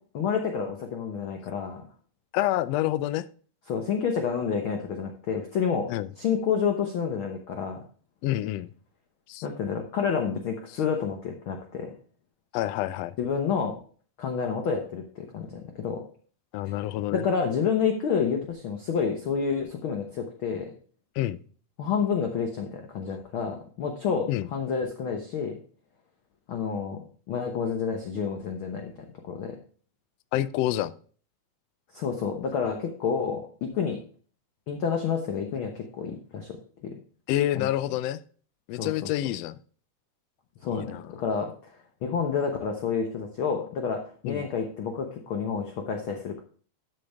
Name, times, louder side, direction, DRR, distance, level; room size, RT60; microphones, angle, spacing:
voice 1, 0.1-1.9 3.7-5.9 6.2-7.8 9.4-11.9 13.2-13.7 14.2-16.0 16.6-16.8 17.1-20.7 21.8-25.5 26.5-28.9 29.3-29.6 31.9-34.0 34.7-36.6 36.8-36.9 37.5-37.7 38.7-39.1 40.6-46.4, left 6 dB, 60° left, 1.5 m, -29 dB
voice 2, 2.3-3.2 5.9-6.1 8.2-8.7 9.3-9.4 12.5-13.1 16.5-17.2 21.2-21.4 24.3-24.5 30.3-30.9 37.3-38.2 38.7-39.6 40.7-41.0 44.2-44.5, left 14 dB, 80° left, 1.5 m, -27 dB
12.5 x 6.6 x 3.5 m
omnidirectional pair, 3.4 m